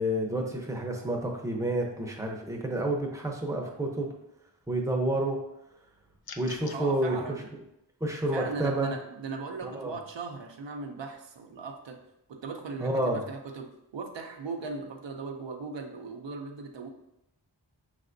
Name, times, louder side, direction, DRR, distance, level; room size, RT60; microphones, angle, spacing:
voice 1, 0.0-4.1 4.7-5.4 6.4-7.2 7.5-7.6 8.0-8.9 9.6-9.9 12.8-13.2, right 1 dB, 5° right, 1 dB, 0.7 m, -29 dB
sound 1, 6.2-6.8, left 6 dB, 60° left, 0.5 m, -43 dB
voice 2, 6.7-7.4 8.3-12.0 12.3-16.9, right 4 dB, 80° right, 3 dB, 0.6 m, -38 dB
5.1 x 3.3 x 2.6 m, 0.86 s
wide cardioid pair, 65°, 43 cm